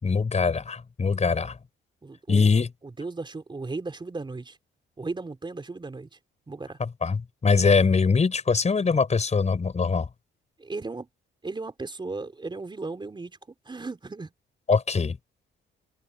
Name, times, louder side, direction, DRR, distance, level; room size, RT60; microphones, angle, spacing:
voice 1, 0.0-1.6 2.3-2.7 6.8-10.1 14.7-15.2, left 5 dB, 35° left, 5.4 m, -22 dB
voice 2, 2.0-4.6 5.0-6.1 6.5-6.8 10.6-11.1 11.4-13.4 13.7-14.3, right 3 dB, 25° right, 3.8 m, -36 dB
cardioid pair, 90°, 20 cm